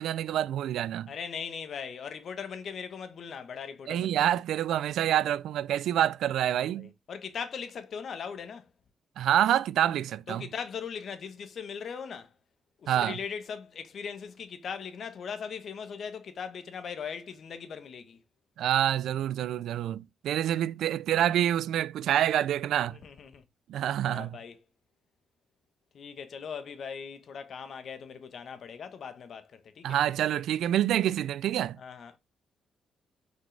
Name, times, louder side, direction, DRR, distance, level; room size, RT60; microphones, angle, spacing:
voice 1, 0.0-1.1 3.9-6.9 9.2-10.5 12.9-13.2 18.6-23.0 23.7-24.4 29.8-31.8, right 11 dB, 80° right, 0.4 m, -27 dB
voice 2, 1.1-4.3 6.5-8.7 10.3-12.3 12.8-18.2 22.9-23.4 24.0-24.6 25.9-30.0 31.8-32.2, left 6 dB, 60° left, 1.2 m, -39 dB
6.3 x 5.2 x 3.4 m
cardioid pair, 85°, 0 cm